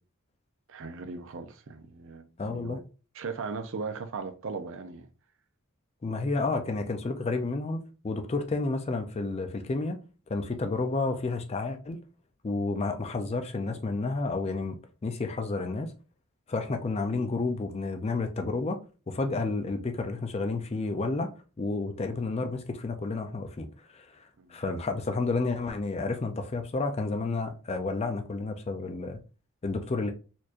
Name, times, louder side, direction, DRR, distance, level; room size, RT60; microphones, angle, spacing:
voice 1, 0.7-2.8 3.1-5.1 6.4-6.5 17.1-17.2 24.4-24.6, right 4 dB, 60° right, 0.5 m, -38 dB
voice 2, 2.4-2.8 6.0-10.0 10.3-12.0 12.4-15.9 16.5-18.8 19.1-21.3 21.6-23.7 23.9-29.2 29.6-30.1, left 3 dB, 30° left, 0.4 m, -31 dB
4.3 x 3.0 x 2.4 m
head